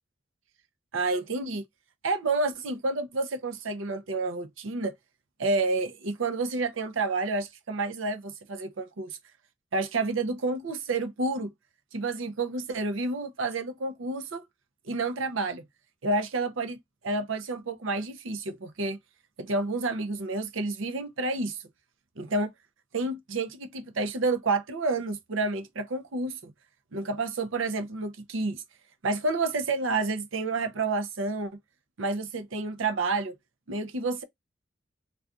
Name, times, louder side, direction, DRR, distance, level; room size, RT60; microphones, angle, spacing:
voice 1, 0.9-1.7 2.0-4.9 5.4-9.2 9.7-11.5 11.9-14.4 14.9-15.6 16.0-19.0 19.4-21.6 22.2-22.5 22.9-26.5 26.9-28.6 29.0-31.5 32.0-33.3 33.7-34.2, right 3 dB, 85° right, 0.6 m, -29 dB
2.6 x 2.3 x 3.5 m
head